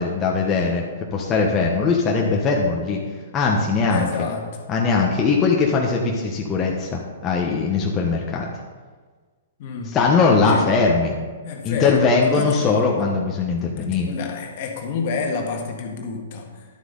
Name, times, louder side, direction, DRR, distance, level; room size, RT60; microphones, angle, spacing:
voice 1, 0.0-3.0 3.3-4.3 4.7-8.5 9.8-11.2 11.6-14.1, left 4 dB, 25° left, -1 dB, 1.2 m, -20 dB
voice 2, 3.9-4.5 9.6-9.9 10.5-10.7 11.4-12.6 13.7-16.6, left 5 dB, 50° left, 2 dB, 1.7 m, -29 dB
11.5 x 8.0 x 4.0 m, 1.4 s
hypercardioid pair, 120°, 0 cm